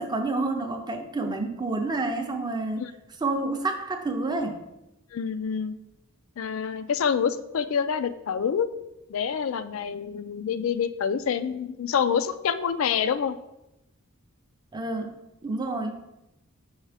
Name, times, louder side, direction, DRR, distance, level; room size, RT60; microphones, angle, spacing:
voice 1, 0.0-2.9 3.2-4.6 14.7-15.1 15.4-16.0, right 2 dB, 20° right, 5 dB, 0.6 m, -29 dB
voice 2, 5.1-5.8 6.4-8.7 9.1-13.4, left 7 dB, 70° left, 12 dB, 0.4 m, -27 dB
6.3 x 4.7 x 3.4 m, 0.91 s
head